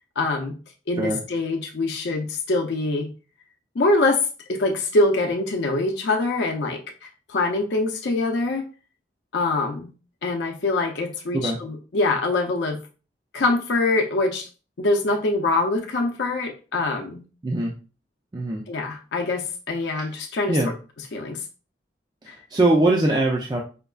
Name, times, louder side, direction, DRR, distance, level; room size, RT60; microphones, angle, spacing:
voice 1, 0.2-0.5 0.9-3.1 3.8-8.6 9.3-9.9 10.2-12.8 13.3-14.5 14.8-17.2 18.7-20.7 21.1-21.4, left 2 dB, 75° left, 2 dB, 0.5 m, -24 dB
voice 2, 22.2-23.6, right 2 dB, 25° right, 0 dB, 0.4 m, -22 dB
5.1 x 2.3 x 2.3 m, 0.34 s
head